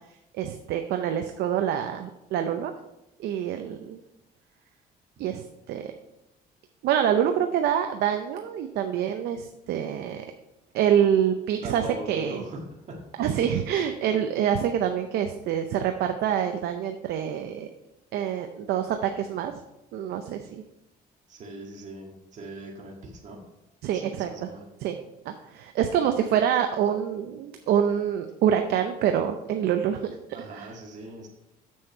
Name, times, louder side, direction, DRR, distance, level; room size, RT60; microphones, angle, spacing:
voice 1, 0.3-2.7 3.2-4.0 5.2-5.8 6.8-10.2 10.7-12.4 13.2-17.7 18.1-19.6 19.9-20.6 23.8-24.5 24.8-25.0 25.3-30.1 30.5-30.7, right 9 dB, 75° right, 6 dB, 0.6 m, -26 dB
voice 2, 11.6-12.6 12.9-13.0 14.0-14.2 21.3-23.4 23.9-24.6 30.3-31.3, right 2 dB, 45° right, -1 dB, 1.8 m, -41 dB
7.1 x 6.3 x 4.5 m, 0.91 s
cardioid pair, 110°, 17 cm